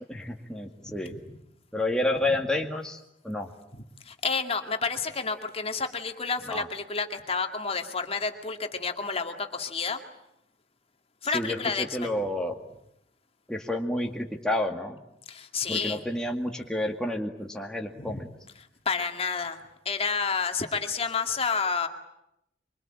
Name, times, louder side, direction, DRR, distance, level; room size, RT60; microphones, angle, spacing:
voice 1, 0.1-1.1 1.7-3.5 6.5-6.7 11.3-12.5 13.5-15.0 15.7-18.3, left 1 dB, 5° left, 1 dB, 2.1 m, -30 dB
voice 2, 4.0-10.0 11.2-12.1 15.3-16.0 18.0-18.2 18.9-21.9, left 5 dB, 35° left, 5 dB, 2.3 m, -30 dB
25.5 x 25.0 x 8.9 m, 0.79 s
head